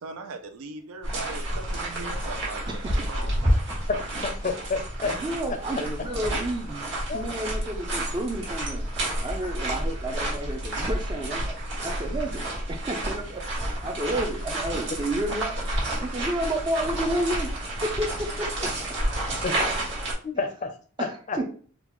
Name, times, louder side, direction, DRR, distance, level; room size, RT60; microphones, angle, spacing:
voice 1, 0.0-2.8 3.1-3.7, right 3 dB, 80° right, 6 dB, 0.5 m, -39 dB
sound 1, 1.0-20.1, right 1 dB, 55° right, 1.4 m, -30 dB
voice 2, 2.7-3.3 5.0-6.9 7.1-8.9 9.2-13.4 13.8-15.6 16.0-17.5 17.8-19.0 21.0-21.5, right 1 dB, 20° right, 4 dB, 0.4 m, -31 dB
voice 3, 3.9-5.2 7.1-7.2 19.4-19.7 20.2-21.4, left 4 dB, 35° left, 7 dB, 0.5 m, -30 dB
3.8 x 2.2 x 3.0 m, 0.42 s
head